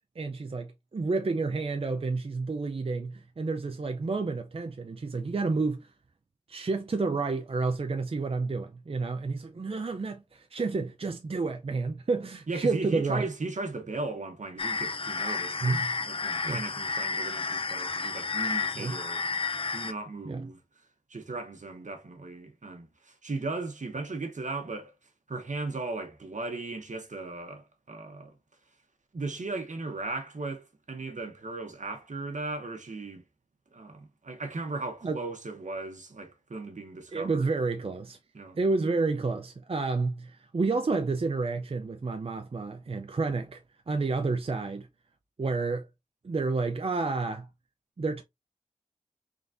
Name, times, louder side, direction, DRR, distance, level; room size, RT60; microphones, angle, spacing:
voice 1, 0.2-5.9 6.5-13.3 15.6-15.9 16.4-16.6 18.8-19.0 20.2-20.5 35.0-35.2 37.1-38.2 38.6-43.6 43.9-44.9 45.4-45.9 46.2-47.5 48.0-48.2, right 3 dB, 45° right, 0.5 m, -30 dB
voice 2, 12.5-19.3 19.7-20.6 21.1-24.9 25.3-28.4 29.1-33.2 33.7-37.5 38.3-38.6, right 3 dB, 70° right, 0.9 m, -37 dB
sound 1, 14.6-19.9, left 4 dB, 45° left, 0.5 m, -31 dB
3.9 x 3.5 x 2.5 m
wide cardioid pair, 60°, 13 cm